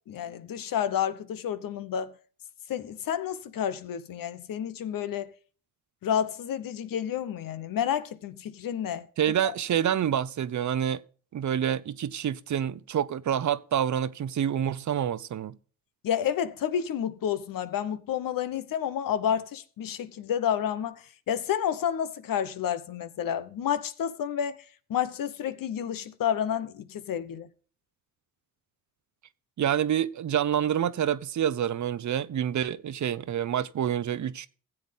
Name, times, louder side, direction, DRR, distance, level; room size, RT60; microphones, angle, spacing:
voice 1, 0.1-2.1 2.7-5.3 6.0-9.1 9.4-9.5 16.0-24.6 24.9-27.5, left 9 dB, 75° left, 1.0 m, -30 dB
voice 2, 9.2-11.0 11.3-15.6 29.6-34.5, right 9 dB, 55° right, 0.7 m, -27 dB
15.0 x 7.9 x 3.6 m
supercardioid pair, 55°, 34 cm